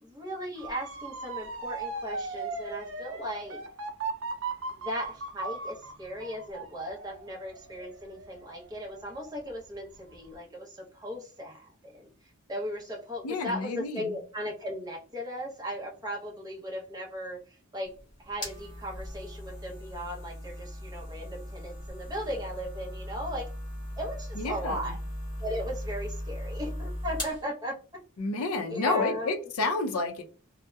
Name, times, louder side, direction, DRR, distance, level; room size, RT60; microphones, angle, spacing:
voice 1, 0.0-3.6 4.7-12.1 12.5-17.9 18.2-23.5 24.0-25.0 25.4-27.8 28.7-29.5, equal, 15° right, -2 dB, 0.7 m, -37 dB
Motor vehicle (road) / Siren, 0.6-9.5 9.9-10.3, right 3 dB, 65° right, 0.4 m, -38 dB
voice 2, 13.2-14.1 24.4-24.9 28.2-30.2, left 3 dB, 90° left, 6 dB, 0.5 m, -30 dB
sound 1, 17.8-27.4, left 1 dB, 20° left, 1.0 m, -38 dB
2.7 x 2.0 x 2.2 m, 0.38 s
head